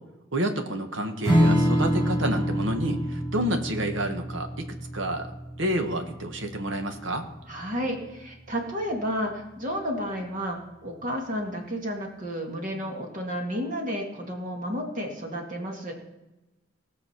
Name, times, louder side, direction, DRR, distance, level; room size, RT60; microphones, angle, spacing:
voice 1, 0.3-4.7 4.9-5.3 5.6-7.2, right 1 dB, 65° right, 5 dB, 1.4 m, -29 dB
Strum, 1.2-8.1, equal, 15° right, 5.0 m, -27 dB
voice 2, 7.5-15.9, equal, 40° right, 1 dB, 2.1 m, -31 dB
18.5 x 6.5 x 5.9 m, 1.0 s
head